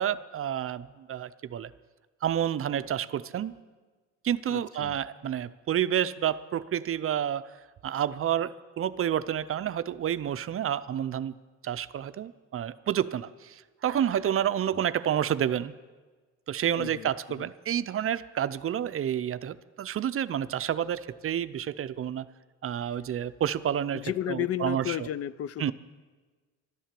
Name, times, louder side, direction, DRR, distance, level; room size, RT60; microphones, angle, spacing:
voice 1, 0.0-1.7 2.2-3.5 4.2-7.5 7.8-11.3 11.6-15.7 16.5-22.3 22.6-25.1 25.6-25.7, right 10 dB, 45° right, 14 dB, 0.5 m, -29 dB
voice 2, 4.5-5.0 14.7-14.8 16.8-17.1 17.4-17.5 23.9-25.7, left 12 dB, 55° left, 19 dB, 0.4 m, -33 dB
12.5 x 10.0 x 7.5 m, 1.4 s
cardioid pair, 90°, 30 cm